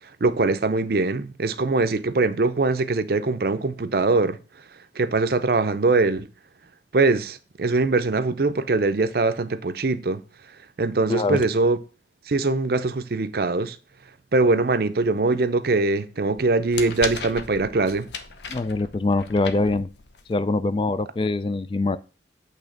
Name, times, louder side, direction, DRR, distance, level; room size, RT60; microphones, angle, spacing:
voice 1, 0.2-4.4 5.0-6.3 6.9-10.2 10.8-11.8 12.3-13.8 14.3-18.1, right 3 dB, 55° right, 0.6 m, -22 dB
voice 2, 11.1-11.4 18.5-19.9 20.3-22.0, left 3 dB, 30° left, 0.3 m, -23 dB
sound 1, 16.3-20.3, left 5 dB, 75° left, 0.9 m, -36 dB
8.5 x 3.4 x 6.4 m
head